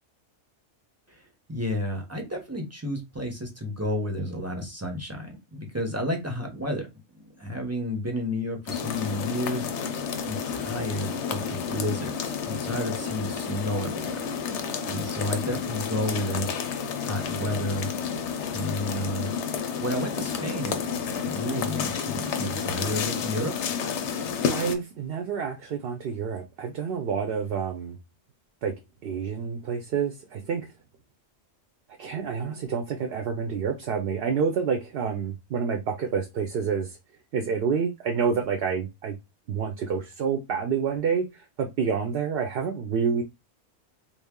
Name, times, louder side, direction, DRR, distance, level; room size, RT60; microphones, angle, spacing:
voice 1, 1.5-6.9 7.1-9.7 10.3-14.2 14.8-16.5 17.0-17.9 18.5-19.3 19.8-20.9 21.2-23.5, left 1 dB, 15° right, 0.6 m, -31 dB
sound 1, 8.7-24.8, left 6 dB, 85° left, 0.9 m, -31 dB
voice 2, 24.5-28.0 28.6-28.7 29.0-30.7 32.0-37.0 37.3-39.2 39.5-41.2 41.6-43.2, right 6 dB, 65° right, 0.8 m, -28 dB
3.2 x 2.3 x 3.6 m
omnidirectional pair, 1.2 m